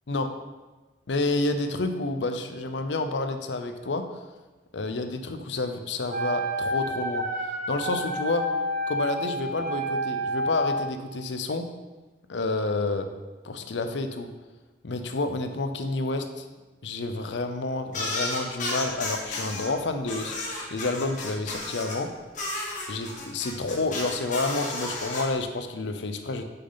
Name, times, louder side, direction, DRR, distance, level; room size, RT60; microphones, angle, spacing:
voice 1, 1.1-4.1 4.7-8.5 8.9-11.7 12.3-13.1 13.4-14.3 14.8-16.5 16.8-22.1 22.9-26.4, left 2 dB, 85° left, 7 dB, 0.6 m, -29 dB
Wind instrument woodwind instrument, 6.1-10.9, equal, 50° right, 0.9 m, -29 dB
sound 1, 17.9-19.7 20.1-22.0 22.3-25.2, left 2 dB, 45° left, 1.5 m, -32 dB
6.3 x 5.9 x 4.0 m, 1.2 s
head